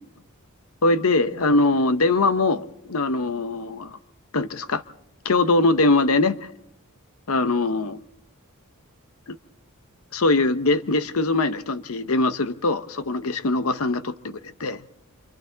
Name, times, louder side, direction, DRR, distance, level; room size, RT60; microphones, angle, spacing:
voice 1, 0.8-4.0 4.3-4.8 5.2-6.4 7.3-8.0 9.3-9.4 10.1-14.8, left 2 dB, 65° left, 11 dB, 0.8 m, -22 dB
27.5 x 26.5 x 3.9 m, 0.72 s
head